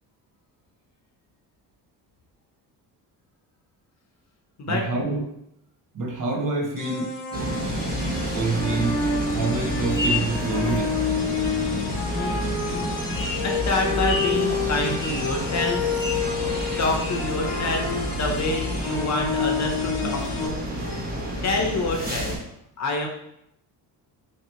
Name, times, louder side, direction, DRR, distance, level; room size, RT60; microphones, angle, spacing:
voice 1, 4.7-5.3 5.9-7.1 8.3-9.0 9.3-11.0 20.0-20.1, right 3 dB, 50° right, 1 dB, 0.8 m, -27 dB
sound 1, 6.8-20.5, left 4 dB, 80° left, 1.0 m, -29 dB
sound 2, 7.3-22.4, equal, 20° right, 1.0 m, -30 dB
sound 3, 9.8-11.0 11.5-11.6 12.3-12.4 12.7-17.9 18.2-18.5 18.9-19.5 19.8-21.0 21.4-21.7, left 3 dB, 10° left, 0.5 m, -35 dB
voice 2, 12.0-13.0 13.4-15.9 16.8-20.6 21.4-22.4 22.8-23.1, left 2 dB, 40° left, 2 dB, 0.8 m, -27 dB
3.2 x 2.8 x 4.2 m, 0.79 s
cardioid pair, 115°, 41 cm